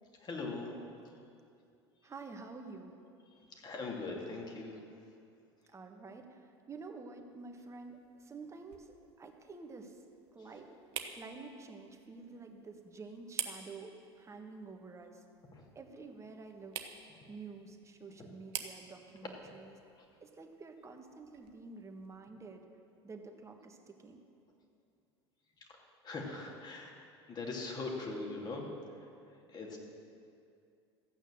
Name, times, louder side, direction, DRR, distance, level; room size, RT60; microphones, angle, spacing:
voice 1, 0.2-0.8 3.3-4.8 10.4-10.5 15.5-15.6 17.2-17.3 19.9-20.0 25.6-26.9 27.3-29.8, left 3 dB, 30° left, 0 dB, 2.7 m, -42 dB
voice 2, 2.0-3.0 5.7-10.0 10.3-15.2 15.7-16.7 17.3-19.7 20.2-22.6 23.0-24.2, right 4 dB, 20° right, 4 dB, 1.5 m, -49 dB
sound 1, 7.4-22.2, right 9 dB, 60° right, 1.0 m, -49 dB
14.5 x 9.0 x 6.8 m, 2.5 s
figure-of-eight pair, 75°, 14 cm